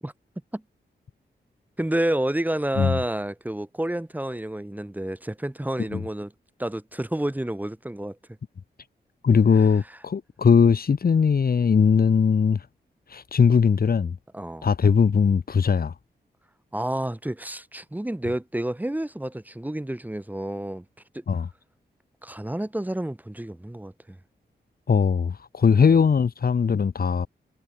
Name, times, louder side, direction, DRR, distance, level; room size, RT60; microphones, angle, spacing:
voice 1, 1.8-6.3 6.6-8.2 9.5-9.7 14.3-14.7 16.7-20.8 21.1-21.2 22.2-24.2 25.8-26.0, right 1 dB, 10° right, 5.8 m, -29 dB
voice 2, 9.2-12.6 13.1-14.2 14.6-15.9 21.3-21.5 24.9-27.3, left 6 dB, 55° left, 2.8 m, -20 dB
wide cardioid pair, 115°, 18 cm